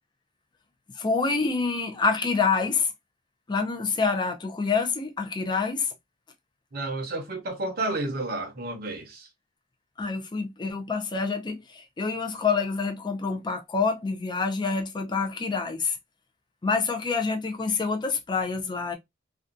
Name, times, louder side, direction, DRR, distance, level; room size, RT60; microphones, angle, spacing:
voice 1, 0.9-2.9 3.5-5.9 10.0-16.0 16.6-19.0, left 4 dB, 25° left, 0.4 m, -27 dB
voice 2, 6.7-9.3, right 2 dB, 55° right, 0.7 m, -31 dB
2.5 x 2.2 x 2.4 m
head